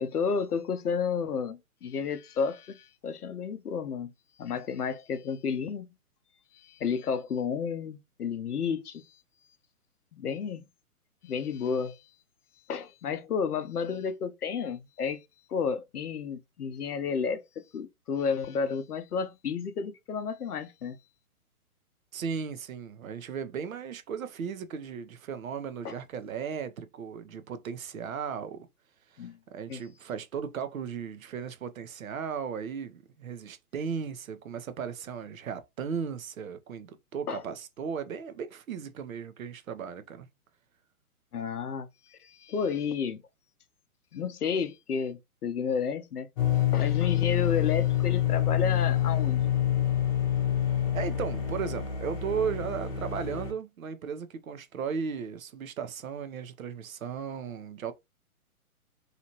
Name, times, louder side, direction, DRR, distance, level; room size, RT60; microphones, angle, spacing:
voice 1, 0.0-4.1 4.4-5.9 6.5-9.0 10.1-10.6 11.2-12.0 12.7-15.2 15.5-21.0 25.8-26.0 29.2-29.4 29.7-29.8 37.3-37.4 41.3-43.2 44.1-46.3 46.7-49.5, left 6 dB, 80° left, 0.6 m, -31 dB
voice 2, 22.1-28.7 29.1-40.3 50.9-57.9, right 6 dB, 65° right, 0.7 m, -36 dB
sound 1, 46.4-53.5, left 10 dB, 25° left, 0.8 m, -27 dB
2.8 x 2.4 x 2.8 m
figure-of-eight pair, 130°, 45 cm